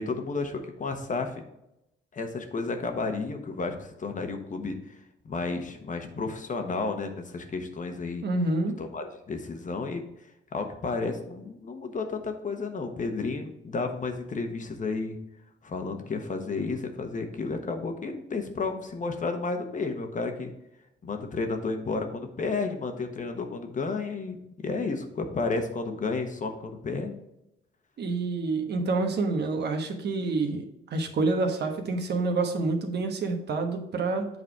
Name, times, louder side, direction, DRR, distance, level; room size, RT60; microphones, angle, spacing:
voice 1, 0.0-1.4 2.1-5.0 5.2-8.2 8.8-10.0 10.5-15.2 15.6-20.5 21.0-27.2, left 4 dB, 40° left, 6 dB, 1.2 m, -32 dB
voice 2, 8.2-8.8 28.0-30.6 30.9-34.3, right 3 dB, 55° right, 4 dB, 1.3 m, -27 dB
7.8 x 4.0 x 4.8 m, 0.86 s
cardioid pair, 90°, 20 cm